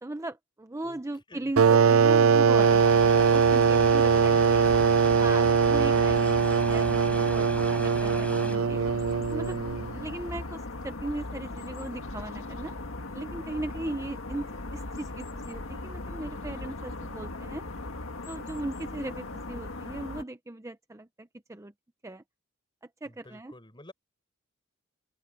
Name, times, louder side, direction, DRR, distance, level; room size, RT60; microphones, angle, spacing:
voice 1, 0.0-4.6 5.2-8.8 9.3-9.6 9.9-12.8 13.1-17.6 18.3-21.7 22.0-22.2 23.0-23.5, right 2 dB, 15° right, 0.6 m, -38 dB
voice 2, 0.8-1.5 4.1-4.9 23.0-23.9, left 2 dB, 25° left, 5.0 m, -49 dB
sound 1, 1.6-9.9, right 6 dB, 75° right, 0.5 m, -21 dB
sound 2, 2.5-20.2, left 2 dB, 70° left, 1.8 m, -38 dB
sound 3, 2.6-8.6, left 1 dB, 5° left, 4.9 m, -42 dB
head